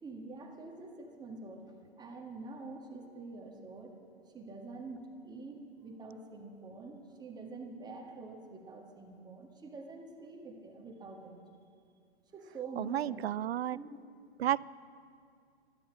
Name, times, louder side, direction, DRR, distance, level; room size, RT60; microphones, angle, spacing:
voice 1, 0.0-4.0 4.3-11.3 12.3-13.9, right 3 dB, 10° right, 1 dB, 1.8 m, -46 dB
voice 2, 12.8-13.8 14.4-14.6, right 12 dB, 70° right, 21 dB, 0.5 m, -32 dB
16.0 x 13.0 x 6.3 m, 2.3 s
hypercardioid pair, 120°, 33 cm